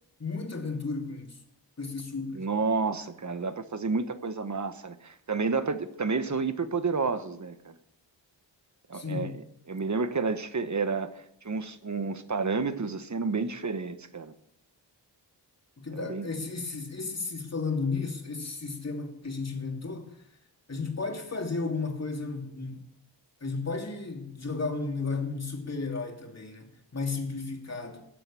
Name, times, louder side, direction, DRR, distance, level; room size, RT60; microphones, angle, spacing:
voice 1, 0.2-1.4 1.8-2.5 8.9-9.4 15.8-20.1 20.7-22.8 23.4-28.0, left 4 dB, 35° left, 2.8 m, -33 dB
voice 2, 2.3-7.8 8.9-9.3 9.7-14.3 15.9-16.3, right 4 dB, 40° right, 1.2 m, -30 dB
19.0 x 7.9 x 8.5 m
wide cardioid pair, 145°, 45 cm